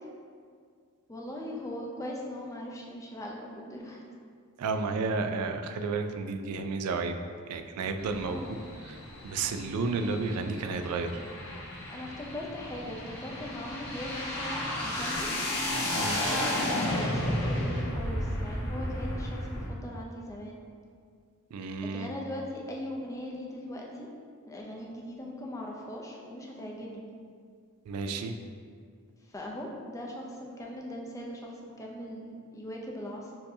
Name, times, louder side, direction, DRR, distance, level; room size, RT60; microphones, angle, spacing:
voice 1, 1.1-4.0 4.7-4.8 8.2-8.6 11.9-15.3 16.2-20.6 21.9-24.1 24.5-27.1 29.2-33.3, left 1 dB, 15° left, -2 dB, 0.4 m, -40 dB
voice 2, 4.6-7.1 7.5-8.4 9.2-11.2 16.0-16.2 21.5-22.1 27.9-28.3, right 4 dB, 85° right, 7 dB, 0.3 m, -31 dB
sound 1, 8.0-19.7, left 1 dB, 70° left, 1.3 m, -33 dB
6.6 x 2.7 x 2.7 m, 2.1 s
head